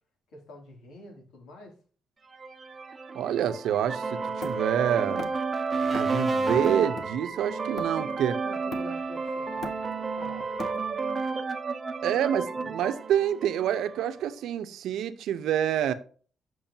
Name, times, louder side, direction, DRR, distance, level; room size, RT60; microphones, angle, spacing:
voice 1, 0.3-1.8 8.4-9.8 10.2-10.6, left 1 dB, 90° left, 2.8 m, -46 dB
sound 1, 2.3-14.1, right 4 dB, 25° right, 0.7 m, -31 dB
voice 2, 3.1-5.3 5.9-8.4 12.0-15.9, right 10 dB, 80° right, 0.8 m, -27 dB
Hammer, 4.4-5.5 5.9-6.3 6.6-8.2 8.7-9.2 9.4-11.1, left 3 dB, 45° left, 0.9 m, -41 dB
8.9 x 6.2 x 2.8 m
cardioid pair, 165°, 0 cm